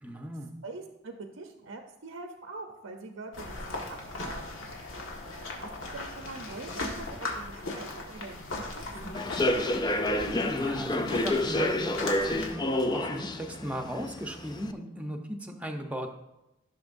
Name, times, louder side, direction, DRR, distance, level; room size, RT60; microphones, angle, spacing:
voice 1, 0.0-0.5 10.4-16.1, equal, 5° right, 4 dB, 0.8 m, -37 dB
voice 2, 0.6-4.6 5.5-9.5, right 3 dB, 75° right, 4 dB, 0.7 m, -44 dB
sound 1, 3.3-12.5, left 2 dB, 80° left, 1.7 m, -38 dB
Human voice / Subway metro underground, 9.1-14.7, left 1 dB, 20° left, 0.4 m, -29 dB
14.5 x 6.3 x 2.6 m, 0.93 s
head